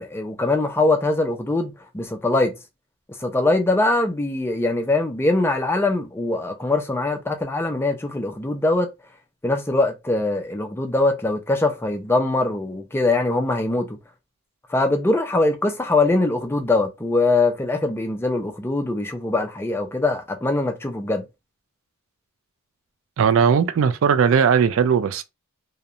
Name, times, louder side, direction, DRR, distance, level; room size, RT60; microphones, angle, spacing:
voice 1, 0.0-2.6 3.2-8.9 9.4-14.0 14.7-21.3, left 2 dB, 10° left, 0.4 m, -22 dB
voice 2, 23.2-25.2, right 7 dB, 65° right, 0.3 m, -18 dB
2.7 x 2.1 x 2.4 m
head